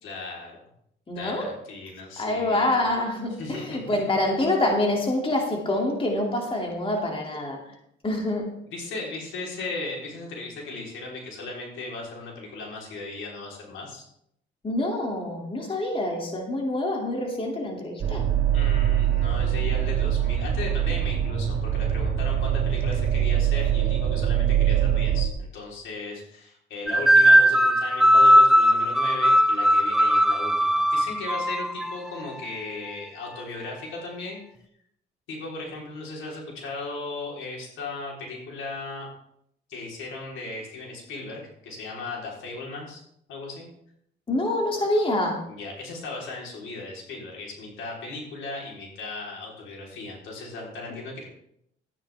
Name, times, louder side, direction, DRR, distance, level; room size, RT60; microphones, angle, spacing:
voice 1, 0.0-0.6 1.2-2.9 3.4-4.0 8.7-14.0 18.5-34.4 35.3-39.1 39.7-43.0 43.3-43.7 45.5-51.3, left 3 dB, 85° left, -3 dB, 4.0 m, -37 dB
voice 2, 1.1-1.5 2.2-7.6 8.0-8.5 14.6-18.3 44.3-45.4, left 1 dB, 25° left, 0 dB, 2.7 m, -26 dB
sound 1, 18.0-25.3, right 10 dB, 50° right, 1.6 m, -23 dB
sound 2, 26.9-31.9, equal, ahead, 0.5 m, -18 dB
13.0 x 9.6 x 3.5 m, 0.73 s
cardioid pair, 90°, 20 cm